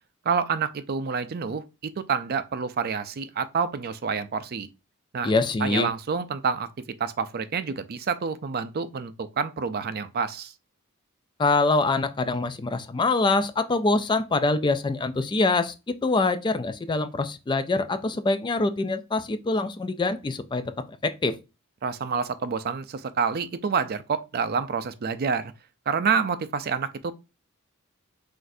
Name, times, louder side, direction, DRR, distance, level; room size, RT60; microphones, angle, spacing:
voice 1, 0.3-4.7 5.1-5.3 5.6-6.7 7.0-10.5 21.8-25.5 25.9-27.1, right 6 dB, 45° right, 0.4 m, -28 dB
voice 2, 5.2-5.9 11.4-15.7 16.0-21.4, left 3 dB, 20° left, 0.3 m, -24 dB
6.0 x 2.6 x 2.6 m
head